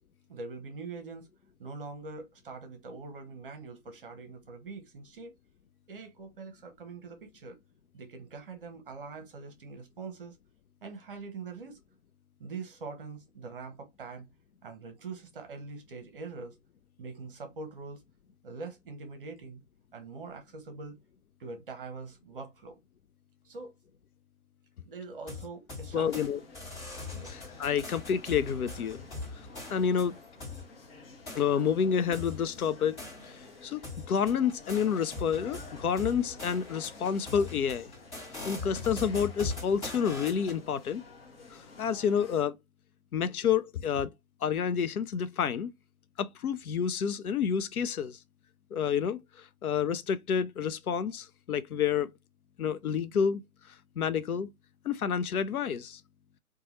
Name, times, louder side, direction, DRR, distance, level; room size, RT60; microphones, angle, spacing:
voice 1, 0.3-1.3 1.6-5.3 5.9-7.6 7.9-10.4 10.8-11.8 12.4-14.3 14.6-16.6 17.0-18.0 18.4-19.6 19.9-21.0 21.4-22.8 23.4-23.7 24.8-26.3 27.1-27.4, right 4 dB, 40° right, 0.8 m, -43 dB
sound 1, 25.3-26.3 26.5-30.6 31.3-31.4 32.1-33.5 33.8-40.6, left 3 dB, 20° left, 1.5 m, -41 dB
voice 2, 25.9-26.4 27.3-29.0 29.7-30.2 31.3-33.0 33.4-33.8 34.1-37.9 38.4-41.0 41.5-42.6 43.1-44.1 44.4-45.7 46.2-48.2 48.7-52.1 52.6-53.4 54.0-54.5 54.8-56.0, left 7 dB, 80° left, 0.5 m, -29 dB
sound 2, 25.9-42.4, left 3 dB, 45° left, 0.9 m, -51 dB
2.8 x 2.3 x 2.9 m
figure-of-eight pair, 140°, 43 cm